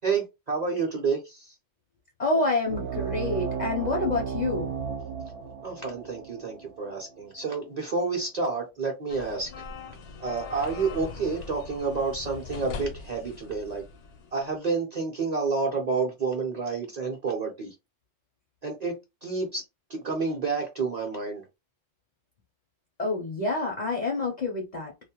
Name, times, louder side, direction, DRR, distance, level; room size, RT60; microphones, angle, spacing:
voice 1, 0.0-1.5 5.6-9.5 10.2-13.8 14.3-17.7 18.6-18.9 19.2-19.6 19.9-21.4, right 4 dB, 45° right, 0.6 m, -29 dB
voice 2, 2.2-4.7 23.0-24.9, left 3 dB, 50° left, 0.5 m, -27 dB
sound 1, 2.7-7.8, right 6 dB, 70° right, 0.9 m, -34 dB
sound 2, 9.1-14.5, left 5 dB, 75° left, 0.9 m, -41 dB
2.4 x 2.1 x 2.8 m
omnidirectional pair, 1.3 m